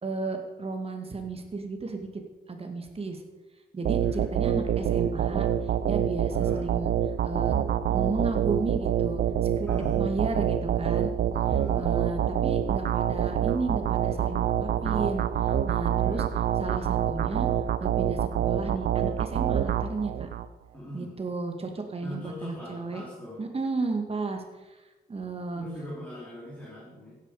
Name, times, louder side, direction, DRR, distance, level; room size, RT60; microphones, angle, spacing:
voice 1, 0.0-2.1 2.5-3.2 3.7-5.5 5.9-6.9 7.2-7.5 7.9-11.1 11.7-16.2 16.6-17.5 17.8-20.3 20.9-23.0 23.4-24.8 25.1-25.6, right 3 dB, 35° right, 5 dB, 2.3 m, -33 dB
voice 2, 3.9-4.3 6.3-6.7 9.7-10.0 11.4-12.0 15.9-16.3 20.7-21.1 22.0-23.4 25.5-27.2, equal, 10° left, -6 dB, 4.0 m, -41 dB
sound 1, 3.9-20.5, right 9 dB, 80° right, 0.7 m, -26 dB
16.0 x 10.5 x 5.1 m, 1.2 s
wide cardioid pair, 115°, 16 cm